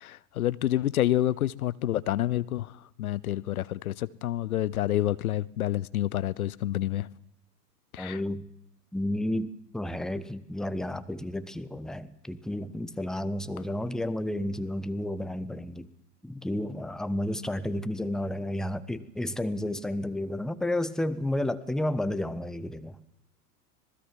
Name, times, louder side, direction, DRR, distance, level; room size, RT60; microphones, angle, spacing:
voice 1, 0.0-2.7 3.0-7.1 7.9-8.2, left 13 dB, 65° left, 0.9 m, -28 dB
voice 2, 8.0-8.5 8.9-15.9 16.2-23.0, left 1 dB, ahead, 1.1 m, -31 dB
26.0 x 19.5 x 7.5 m
figure-of-eight pair, 85°, 48 cm